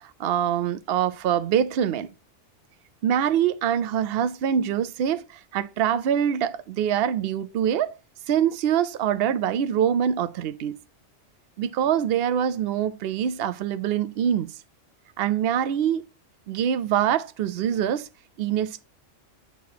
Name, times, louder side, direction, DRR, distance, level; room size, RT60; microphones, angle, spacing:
voice 1, 0.0-2.1 3.0-8.0 8.3-10.8 11.6-14.5 15.2-16.0 16.5-18.1 18.4-18.8, right 9 dB, 65° right, 0.7 m, -24 dB
8.4 x 2.8 x 5.8 m
omnidirectional pair, 1.2 m